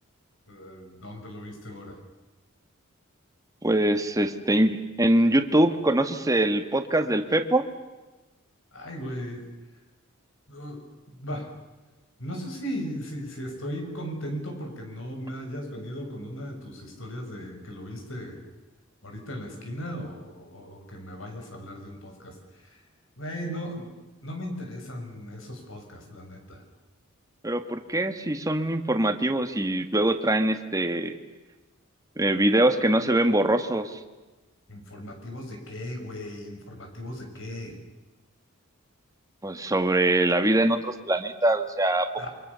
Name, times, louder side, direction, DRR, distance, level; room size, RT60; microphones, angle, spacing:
voice 1, 0.5-2.0 8.7-9.5 10.5-11.5 12.2-18.4 19.0-22.8 23.2-23.9 24.2-26.6 34.7-37.8 42.2-42.3, equal, 65° left, 4 dB, 6.7 m, -37 dB
voice 2, 3.6-7.6 27.4-31.1 32.2-34.0 39.4-42.1, right 1 dB, 15° right, 7 dB, 1.7 m, -23 dB
28.5 x 25.0 x 7.0 m, 1.2 s
head